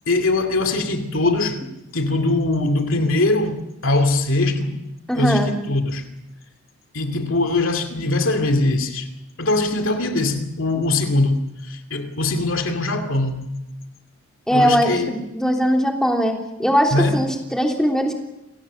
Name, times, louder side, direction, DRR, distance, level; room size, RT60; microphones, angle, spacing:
voice 1, 0.1-1.6 1.9-4.8 5.1-6.0 6.9-9.1 9.4-13.5 14.5-15.1 16.9-17.2, left 2 dB, 70° left, 2.4 m, -21 dB
voice 2, 5.1-5.5 14.5-18.1, equal, 5° left, 3.3 m, -20 dB
28.0 x 18.0 x 7.3 m
head